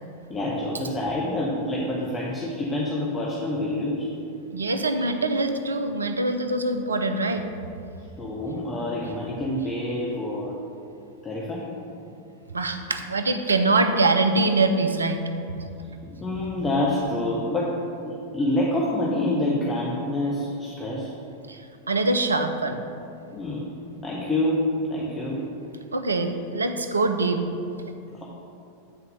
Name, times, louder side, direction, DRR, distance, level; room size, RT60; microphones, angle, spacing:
voice 1, 0.3-4.2 8.2-10.6 11.2-11.9 16.0-21.1 23.3-23.8 24.0-25.5 28.1-28.2, left 1 dB, 20° left, -5 dB, 1.0 m, -27 dB
voice 2, 4.5-7.5 12.5-15.7 21.5-21.6 21.9-22.8 25.9-27.4, right 2 dB, 75° right, 7 dB, 0.5 m, -24 dB
8.9 x 4.2 x 5.4 m, 2.6 s
figure-of-eight pair, 90°, 0 cm